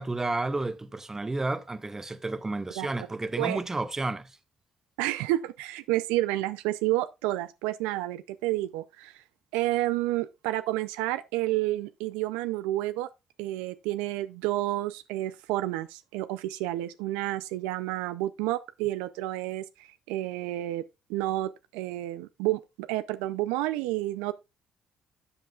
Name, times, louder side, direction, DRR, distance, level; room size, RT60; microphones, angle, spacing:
voice 1, 0.0-4.4, right 2 dB, 20° right, 1.2 m, -31 dB
voice 2, 5.0-9.2 9.5-13.1 13.4-20.8 21.1-24.3, right 16 dB, 85° right, 0.4 m, -30 dB
12.5 x 7.6 x 2.3 m
hypercardioid pair, 55°, 2 cm